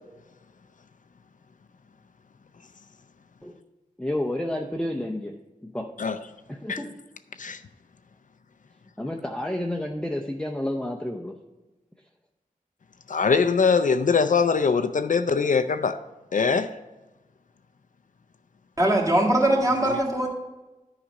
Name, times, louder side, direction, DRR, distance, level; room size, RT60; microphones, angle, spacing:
voice 1, 4.0-5.4 5.6-6.1 6.5-7.0 9.0-11.4, left 1 dB, 5° left, 0.6 m, -30 dB
voice 2, 13.1-16.0 16.3-16.8, left 5 dB, 65° left, 0.4 m, -22 dB
voice 3, 18.8-20.3, right 1 dB, 25° right, 1.7 m, -21 dB
10.0 x 5.0 x 5.2 m
wide cardioid pair, 70°, 14 cm